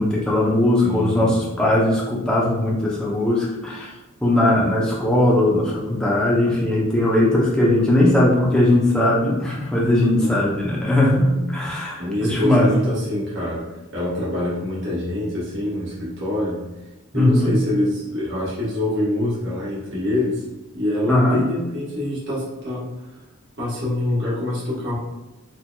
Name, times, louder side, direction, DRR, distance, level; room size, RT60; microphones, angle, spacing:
voice 1, 0.0-3.9 4.2-12.7 17.1-17.5 21.1-21.4, left 1 dB, 5° left, -5 dB, 0.6 m, -19 dB
voice 2, 0.8-1.3 10.1-10.5 12.0-13.6 13.9-16.6 17.1-20.4 20.7-22.9 23.6-24.9, left 1 dB, 55° right, -7 dB, 1.3 m, -25 dB
4.4 x 2.8 x 2.3 m, 1.1 s
head